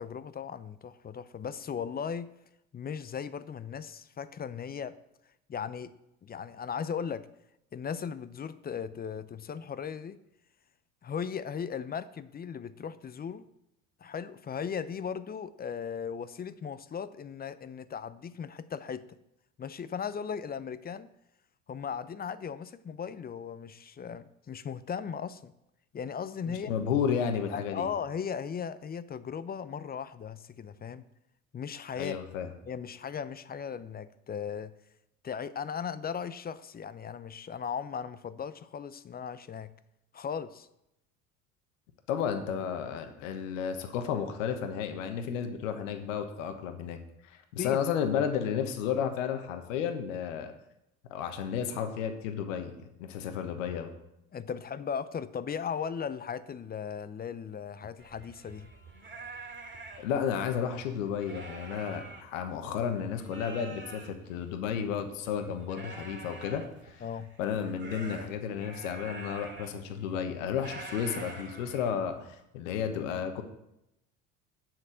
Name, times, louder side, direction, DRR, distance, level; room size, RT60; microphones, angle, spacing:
voice 1, 0.0-2.3 2.7-4.9 5.5-5.9 6.2-7.3 7.7-10.2 11.0-13.4 14.0-19.1 19.6-21.1 21.7-25.5 25.9-26.7 27.5-31.0 31.5-32.2 32.6-34.7 35.2-39.7 40.1-40.7 47.6-47.8 54.3-58.7 67.0-67.3, left 7 dB, 25° left, 14 dB, 0.6 m, -37 dB
voice 2, 26.5-27.9 31.9-32.5 42.1-47.0 47.3-50.5 51.1-52.7 53.0-53.9 60.0-66.6 67.4-73.4, left 7 dB, 75° left, 7 dB, 1.3 m, -32 dB
sound 1, 58.0-62.8 63.1-72.3, right 3 dB, 30° right, 2.3 m, -46 dB
7.6 x 6.0 x 7.8 m, 0.85 s
hypercardioid pair, 70°, 39 cm